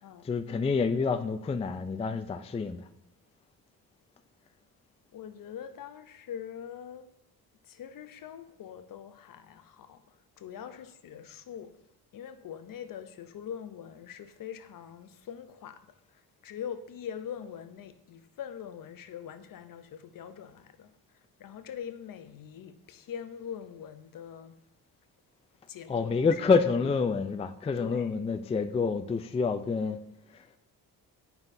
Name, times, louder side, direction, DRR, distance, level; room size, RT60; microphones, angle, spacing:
voice 1, 0.2-2.8 25.9-30.0, left 4 dB, 15° left, 0.4 m, -28 dB
voice 2, 5.1-7.1 7.6-11.8 12.1-24.5 25.7-26.4 27.8-28.1, left 8 dB, 55° left, 0.7 m, -43 dB
8.8 x 5.6 x 2.7 m
cardioid pair, 75°, 39 cm